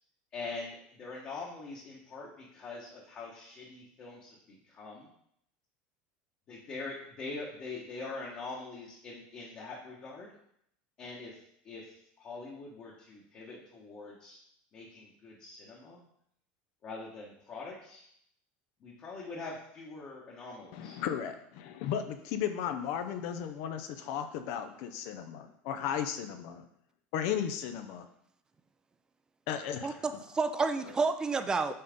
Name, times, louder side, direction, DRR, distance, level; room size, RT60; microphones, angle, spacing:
voice 1, 0.3-5.1 6.5-10.3 11.0-11.4 11.6-14.4 14.7-16.0 16.8-18.1 18.8-21.0, left 3 dB, 35° left, -4 dB, 1.2 m, -43 dB
voice 2, 20.7-26.6 27.1-28.1 29.5-30.0, left 9 dB, 60° left, 9 dB, 0.6 m, -35 dB
voice 3, 29.8-31.7, right 4 dB, 15° right, 9 dB, 0.4 m, -30 dB
5.5 x 4.0 x 5.1 m, 0.71 s
supercardioid pair, 150°, 5 cm